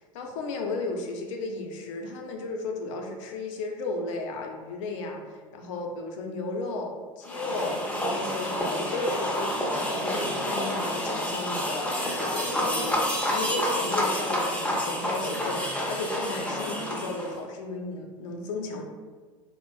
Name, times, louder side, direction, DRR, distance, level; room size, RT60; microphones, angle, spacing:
voice 1, 0.1-18.8, left 3 dB, 65° left, 2 dB, 0.5 m, -34 dB
sound 1, 7.3-17.4, left 1 dB, 5° left, 0.6 m, -29 dB
3.2 x 2.0 x 3.0 m, 1.4 s
hypercardioid pair, 75°, 17 cm